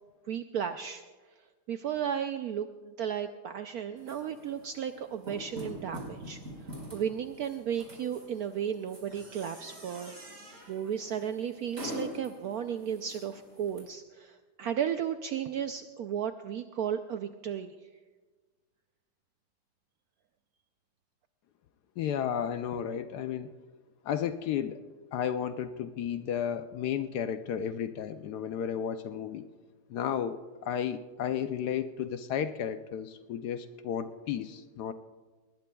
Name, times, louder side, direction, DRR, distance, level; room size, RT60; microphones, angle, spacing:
voice 1, 0.3-1.0 1.7-10.4 10.7-17.7, right 8 dB, 75° right, 8 dB, 0.8 m, -34 dB
sound 1, 4.0-13.8, left 1 dB, 45° right, 5.1 m, -45 dB
voice 2, 22.0-23.5 24.0-24.8 25.1-29.4 29.9-34.9, left 8 dB, 70° left, 10 dB, 1.0 m, -33 dB
19.5 x 19.5 x 2.3 m, 1.3 s
omnidirectional pair, 2.0 m